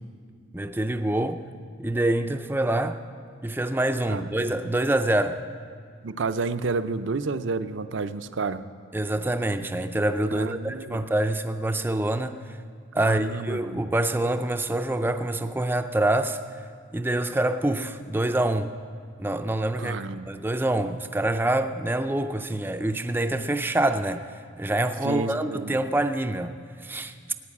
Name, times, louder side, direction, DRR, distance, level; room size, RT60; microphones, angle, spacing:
voice 1, 0.5-1.4 1.8-3.0 3.4-5.4 8.9-12.6 12.9-16.7 16.9-18.7 19.2-20.0 20.3-27.1, right 1 dB, 10° right, 8 dB, 0.4 m, -26 dB
voice 2, 4.1-4.6 6.0-8.6 10.3-11.0 13.0-13.9 19.8-20.3 25.0-25.8, right 4 dB, 65° right, 12 dB, 0.5 m, -30 dB
15.5 x 9.2 x 8.5 m, 2.2 s
head